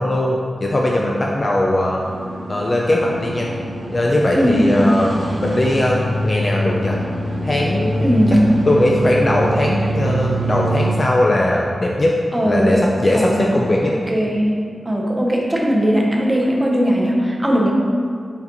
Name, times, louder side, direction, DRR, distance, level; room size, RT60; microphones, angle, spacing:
voice 1, 0.0-2.0 2.5-3.5 3.9-5.1 5.4-6.0 6.2-7.0 7.4-8.1 8.7-12.2 12.5-13.9, left 1 dB, 30° left, -2 dB, 0.4 m, -19 dB
sound 1, 2.0-11.0, right 1 dB, 50° right, 0.7 m, -24 dB
voice 2, 4.3-4.9 8.0-8.4 12.3-12.8 13.1-13.3 14.1-14.5 14.8-17.7, equal, 10° right, -2 dB, 0.8 m, -18 dB
5.2 x 4.9 x 3.9 m, 2.2 s
wide cardioid pair, 160°, 0 cm